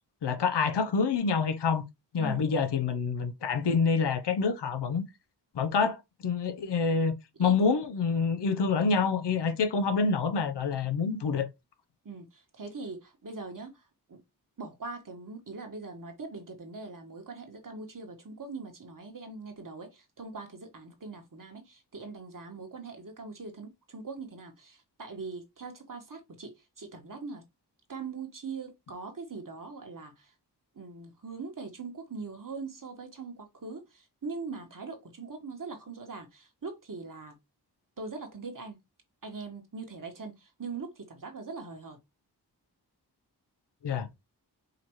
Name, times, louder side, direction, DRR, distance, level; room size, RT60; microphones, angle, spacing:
voice 1, 0.2-1.9 2.1-5.0 5.5-7.1 7.4-11.5 43.8-44.1, left 5 dB, 85° left, 0.7 m, -27 dB
voice 2, 2.2-2.6 7.4-7.5 12.0-13.7 14.1-14.2 14.6-27.4 27.9-30.3 30.7-37.4 38.0-38.8 39.2-42.0, right 4 dB, 50° right, 1.4 m, -41 dB
5.0 x 2.9 x 3.0 m
cardioid pair, 40°, 40 cm